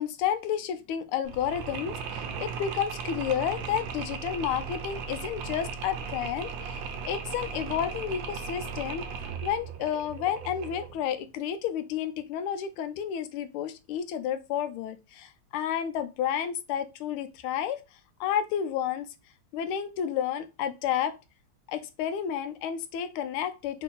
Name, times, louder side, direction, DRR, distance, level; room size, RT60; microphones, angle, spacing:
voice 1, 0.0-9.0 9.4-17.8 18.2-19.1 19.5-21.1 21.7-23.8, left 9 dB, 80° left, 1.4 m, -31 dB
Mechanisms, 1.2-11.0, right 5 dB, 75° right, 1.2 m, -37 dB
3.8 x 2.6 x 4.0 m
omnidirectional pair, 2.4 m